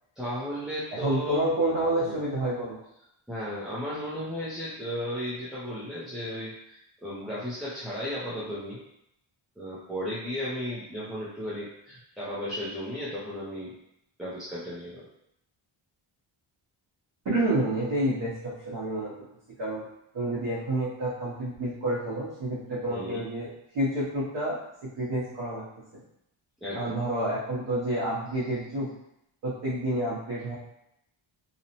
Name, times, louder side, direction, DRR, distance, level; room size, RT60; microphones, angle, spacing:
voice 1, 0.2-1.5 2.1-2.2 3.3-8.8 9.6-13.7 14.2-15.0 22.9-23.2 26.6-27.0, equal, ahead, -10 dB, 0.4 m, -35 dB
voice 2, 0.9-2.8 17.2-19.2 19.6-19.9 20.1-23.5 23.7-25.6 26.7-28.9 29.4-30.6, right 1 dB, 60° right, -8 dB, 0.8 m, -29 dB
2.8 x 2.0 x 2.7 m, 0.79 s
wide cardioid pair, 150°, 49 cm